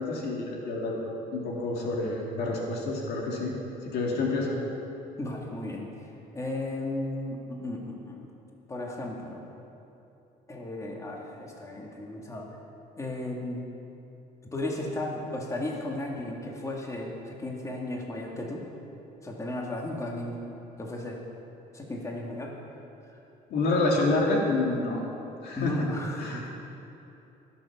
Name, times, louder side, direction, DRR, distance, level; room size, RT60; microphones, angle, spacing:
voice 1, 0.0-3.5 3.8-4.6 23.5-25.0 25.4-25.8 26.2-26.5, left 2 dB, 75° left, -1 dB, 2.4 m, -28 dB
voice 2, 5.2-5.9 6.3-8.3 8.7-9.5 10.5-12.5 13.0-13.7 14.5-18.7 19.2-20.4 20.8-21.2 21.7-22.6 25.6-26.5, left 1 dB, 20° left, -1 dB, 2.0 m, -35 dB
20.0 x 7.2 x 5.9 m, 2.9 s
cardioid pair, 110°, 17 cm